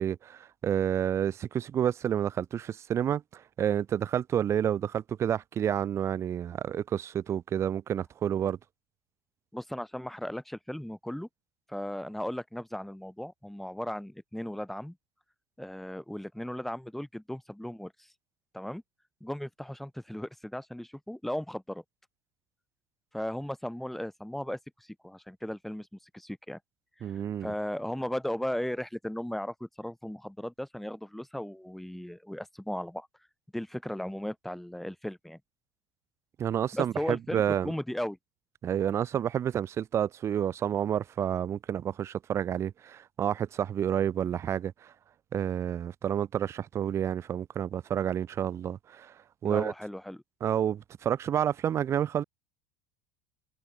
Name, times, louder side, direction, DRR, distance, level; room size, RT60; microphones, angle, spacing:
voice 1, 0.0-3.2 3.6-8.6 27.0-27.5 36.4-37.7 38.6-44.7 45.3-49.1 49.4-49.7 50.4-52.2, right 9 dB, 30° right, 0.3 m, -29 dB
voice 2, 9.5-11.3 11.7-15.0 15.6-17.9 18.5-18.8 19.2-21.8 23.1-24.6 25.0-26.6 27.0-27.1 27.4-33.1 33.5-35.4 36.7-38.2 49.4-50.2, left 1 dB, ahead, 1.1 m, -36 dB
hypercardioid pair, 85°, 9 cm